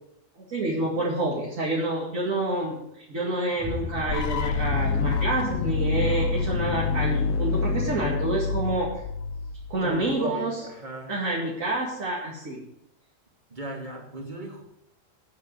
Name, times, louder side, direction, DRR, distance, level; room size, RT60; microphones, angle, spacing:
voice 1, 0.5-8.9 9.7-10.6 11.1-12.6, right 2 dB, 80° right, -4 dB, 2.8 m, -28 dB
sound 1, 4.1-10.0, left 5 dB, 80° left, 1.1 m, -27 dB
sound 2, 9.7-9.8, left 3 dB, 15° right, 1.6 m, -40 dB
voice 2, 9.8-11.1 13.5-14.6, right 1 dB, 35° right, 1 dB, 2.7 m, -36 dB
9.3 x 8.4 x 8.3 m, 0.79 s
omnidirectional pair, 1.4 m